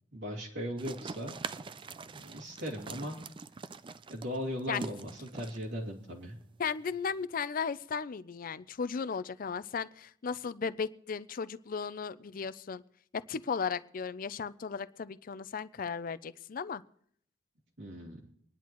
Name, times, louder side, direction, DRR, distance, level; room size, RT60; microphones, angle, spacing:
voice 1, 0.1-1.4 2.1-3.2 4.1-6.4 17.8-18.2, equal, 80° right, -2 dB, 2.4 m, -38 dB
sound 1, 0.8-7.2, right 4 dB, 25° right, 0.4 m, -45 dB
voice 2, 6.6-12.8 13.1-16.8, left 6 dB, 50° left, 15 dB, 0.5 m, -36 dB
25.5 x 10.5 x 3.0 m, 0.66 s
head